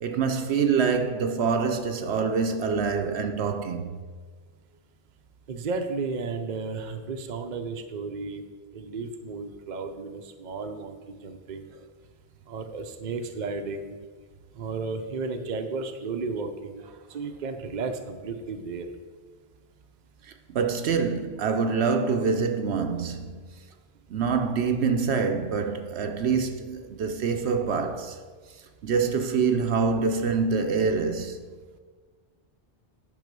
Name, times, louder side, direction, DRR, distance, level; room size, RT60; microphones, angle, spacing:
voice 1, 0.0-3.9 20.5-23.4 24.1-28.2 28.8-31.5, right 5 dB, 75° right, 0.9 m, -25 dB
voice 2, 5.5-8.4 8.7-11.7 12.5-13.9 14.6-16.8 17.1-18.9, right 4 dB, 45° right, 0.7 m, -33 dB
9.5 x 5.4 x 5.2 m
omnidirectional pair, 1.1 m